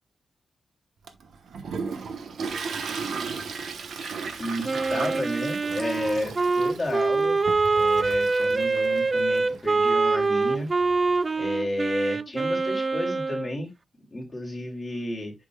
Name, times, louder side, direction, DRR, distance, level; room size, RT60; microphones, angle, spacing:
Toilet flush, 1.1-11.3, right 5 dB, 75° right, 1.0 m, -36 dB
voice 1, 4.4-7.4 7.7-10.7 11.4-13.7 14.1-15.3, left 1 dB, 15° left, -2 dB, 2.6 m, -32 dB
Wind instrument woodwind instrument, 4.6-13.5, right 3 dB, 25° right, 0.3 m, -24 dB
8.3 x 6.0 x 2.3 m, 0.20 s
wide cardioid pair, 135°, 0 cm